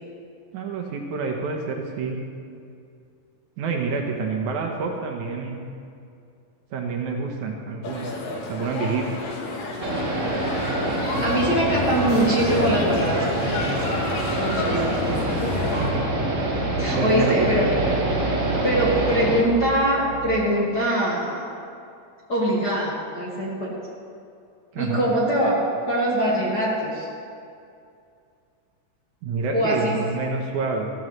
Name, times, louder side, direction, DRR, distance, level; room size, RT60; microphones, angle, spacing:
voice 1, 0.5-2.2 3.6-5.6 6.7-8.1 8.5-9.2 15.8-16.0 16.9-17.7 24.7-25.0 29.2-30.9, right 4 dB, 70° right, 1 dB, 2.3 m, -28 dB
sound 1, 7.8-15.9, left 2 dB, 90° left, 2.9 m, -30 dB
sound 2, 9.8-19.4, right 2 dB, 45° right, 1.0 m, -26 dB
sound 3, 11.1-20.4, right 2 dB, 65° left, 4.9 m, -31 dB
voice 2, 11.2-13.4 14.4-15.4 16.8-17.7 18.6-21.5 22.3-23.7 24.7-25.6 25.9-27.1 29.5-30.0, equal, 40° left, -6 dB, 1.5 m, -23 dB
14.5 x 14.0 x 3.2 m, 2.4 s
omnidirectional pair, 3.8 m